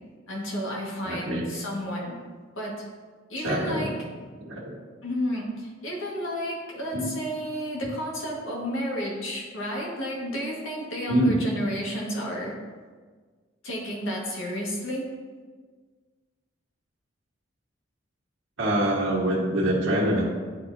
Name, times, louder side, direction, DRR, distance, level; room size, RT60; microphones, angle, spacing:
voice 1, 0.3-2.2 2.6-2.8 3.3-3.9 5.0-12.5 13.6-15.0, equal, 80° left, -3 dB, 1.7 m, -31 dB
voice 2, 1.0-1.5 3.4-3.9 4.4-4.8 6.9-7.1 11.1-11.4 18.6-20.2, right 1 dB, 75° right, -4 dB, 1.5 m, -25 dB
10.0 x 4.1 x 2.7 m, 1.5 s
head